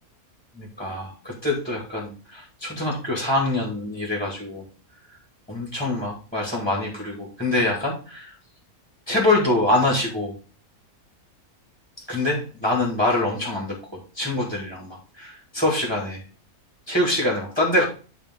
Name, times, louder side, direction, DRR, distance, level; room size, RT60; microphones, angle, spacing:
voice 1, 0.6-4.6 5.5-8.3 9.1-10.3 12.1-16.2 16.9-17.8, left 2 dB, 5° left, -3 dB, 1.8 m, -25 dB
9.8 x 3.4 x 3.7 m, 0.37 s
omnidirectional pair, 1.5 m